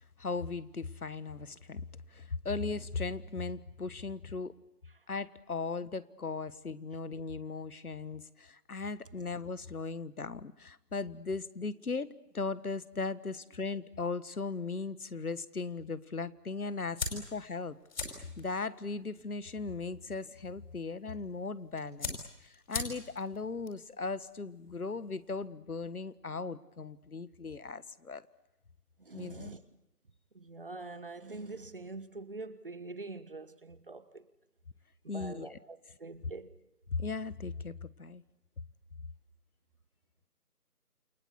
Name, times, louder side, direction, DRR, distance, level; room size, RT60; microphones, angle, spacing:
voice 1, 0.2-4.5 5.1-17.8 18.1-28.2 29.1-29.5 35.1-35.6 36.9-38.2, left 4 dB, 65° left, 1.6 m, -38 dB
sound 1, 17.0-25.4, left 4 dB, 30° left, 5.3 m, -44 dB
voice 2, 29.0-29.6 30.3-34.2 35.0-36.5, right 3 dB, 35° right, 1.4 m, -44 dB
29.0 x 23.5 x 8.4 m
figure-of-eight pair, 165°, 47 cm